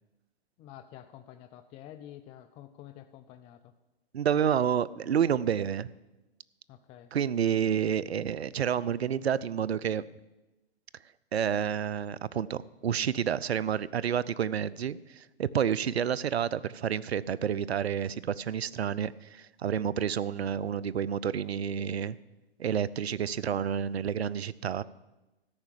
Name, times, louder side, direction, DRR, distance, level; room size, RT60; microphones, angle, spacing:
voice 1, 0.6-3.7 6.7-7.1, left 11 dB, 20° left, 10 dB, 0.4 m, -49 dB
voice 2, 4.1-5.9 7.1-10.0 11.3-22.2 22.6-24.8, right 8 dB, 90° right, 19 dB, 0.5 m, -29 dB
13.5 x 5.7 x 8.3 m, 1.0 s
hypercardioid pair, 115°, 31 cm